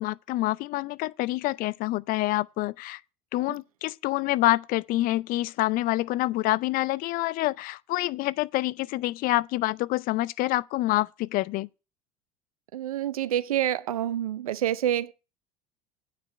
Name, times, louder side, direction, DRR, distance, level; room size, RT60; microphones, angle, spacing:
voice 1, 0.0-3.0 3.3-11.7, left 17 dB, 55° left, 0.5 m, -27 dB
voice 2, 12.7-15.1, right 11 dB, 85° right, 0.7 m, -27 dB
9.2 x 6.7 x 8.1 m
hypercardioid pair, 75°, 18 cm